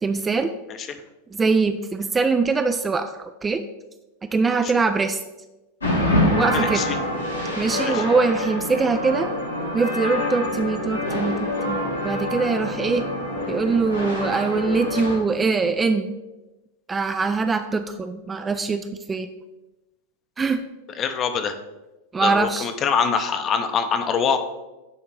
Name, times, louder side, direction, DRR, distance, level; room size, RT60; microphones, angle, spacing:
voice 1, 0.0-0.5 1.3-3.6 4.2-5.2 6.3-6.9 7.6-9.3 9.7-13.1 13.5-16.1 16.9-19.3 20.4-20.6 22.1-22.7, right 4 dB, 15° right, 8 dB, 0.4 m, -23 dB
sound 1, 5.8-15.2, left 1 dB, 80° left, 2.0 m, -26 dB
voice 2, 6.5-6.9 7.8-8.1 21.0-21.6 22.2-24.4, left 6 dB, 30° left, 8 dB, 0.7 m, -24 dB
9.7 x 3.6 x 4.5 m, 1.0 s
figure-of-eight pair, 90°, 0 cm